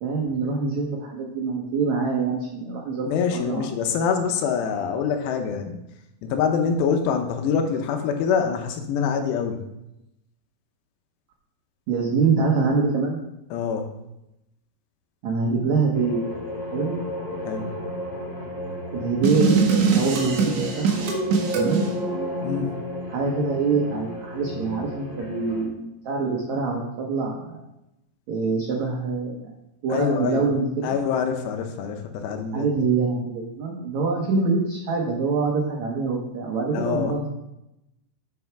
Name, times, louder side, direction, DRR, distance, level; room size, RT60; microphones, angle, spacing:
voice 1, 0.0-3.7 11.9-13.2 15.2-16.2 16.7-17.0 18.9-21.2 21.5-21.9 23.1-27.6 28.3-29.5 29.8-31.0 32.5-37.3, right 4 dB, 80° right, -1 dB, 1.6 m, -25 dB
voice 2, 3.1-5.8 6.2-9.6 13.5-13.9 17.5-17.7 22.4-22.7 29.9-30.5 30.8-32.7 36.7-37.2, left 6 dB, 80° left, 6 dB, 2.9 m, -25 dB
sound 1, 15.9-25.6, equal, 30° left, 2.9 m, -33 dB
sound 2, 19.2-21.9, right 5 dB, 65° right, 2.0 m, -22 dB
7.9 x 6.3 x 5.9 m, 0.90 s
omnidirectional pair, 5.1 m